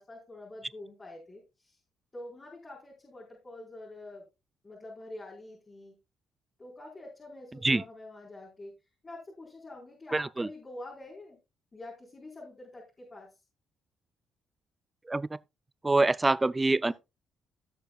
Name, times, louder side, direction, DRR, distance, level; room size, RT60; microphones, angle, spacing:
voice 1, 0.0-1.8 2.1-4.3 4.6-6.0 6.6-8.7 9.0-11.4 11.7-13.4 16.8-16.9, left 2 dB, 25° left, 4.5 m, -46 dB
voice 2, 10.1-10.5 15.1-15.3 15.8-16.9, right 2 dB, 20° right, 0.4 m, -25 dB
16.5 x 6.8 x 2.4 m
cardioid pair, 90°, 0 cm